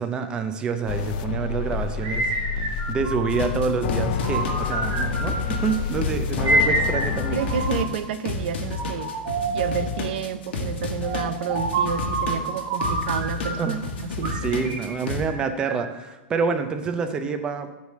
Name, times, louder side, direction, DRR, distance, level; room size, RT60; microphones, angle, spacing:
voice 1, 0.0-2.3 2.9-7.4 10.6-10.7 13.6-17.7, right 5 dB, 15° right, 7 dB, 0.5 m, -27 dB
sound 1, 0.9-7.8, left 6 dB, 45° left, 0.4 m, -29 dB
sound 2, 2.0-3.6 4.2-5.8 6.4-8.1 8.7-9.9 11.0-13.8 14.2-16.0, right 2 dB, 35° right, 1.4 m, -28 dB
sound 3, 3.3-15.3, left 3 dB, 75° left, 1.2 m, -31 dB
voice 2, 7.3-9.1 9.5-13.8 14.2-14.4, right 7 dB, 60° right, 11 dB, 0.5 m, -30 dB
8.1 x 3.3 x 6.5 m, 1.1 s
supercardioid pair, 170°, 6 cm